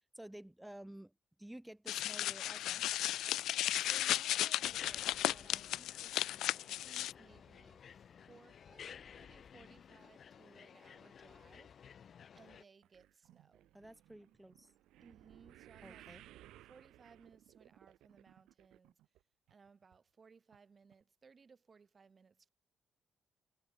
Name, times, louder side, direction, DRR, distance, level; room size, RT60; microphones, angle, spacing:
voice 1, 0.1-2.9 13.7-14.7 15.8-16.2, right 1 dB, 5° right, 4.7 m, -52 dB
sound 1, 1.9-7.1, left 13 dB, 85° left, 0.3 m, -35 dB
voice 2, 3.7-11.7 12.0-12.1 12.3-13.7 15.0-16.0 16.7-19.0 19.5-22.5, right 5 dB, 35° right, 7.5 m, -63 dB
sound 2, 4.6-12.6, left 7 dB, 55° left, 1.9 m, -55 dB
sound 3, 12.8-19.2 19.5-20.0 20.5-20.6 20.9-21.0, right 14 dB, 90° right, 1.6 m, -60 dB
cardioid pair, 90°, 0 cm